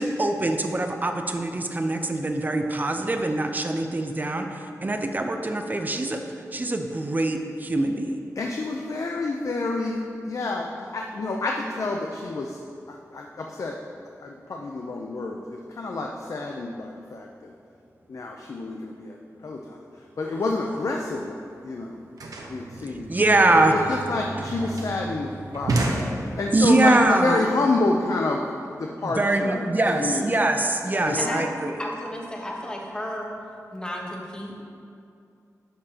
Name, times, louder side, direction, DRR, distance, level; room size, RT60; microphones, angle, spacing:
voice 1, 0.0-6.2 6.5-8.2 23.1-23.7 24.3-24.7 26.5-27.5 29.0-31.7, right 2 dB, 30° right, 5 dB, 0.6 m, -23 dB
voice 2, 8.4-10.0 10.3-10.7 10.9-12.6 12.9-13.8 14.2-17.5 18.1-19.2 19.4-19.8 20.2-22.0 22.5-23.1 23.6-29.7 29.9-30.4 31.0-31.5, left 2 dB, 60° left, 1 dB, 0.5 m, -29 dB
sound 1, 21.3-21.4 21.6-26.8, right 2 dB, 80° right, 0.9 m, -31 dB
voice 3, 31.2-31.5 31.8-33.3 33.7-34.6, equal, 15° left, -1 dB, 1.1 m, -33 dB
11.0 x 6.8 x 2.9 m, 2.5 s
wide cardioid pair, 110°, 6 cm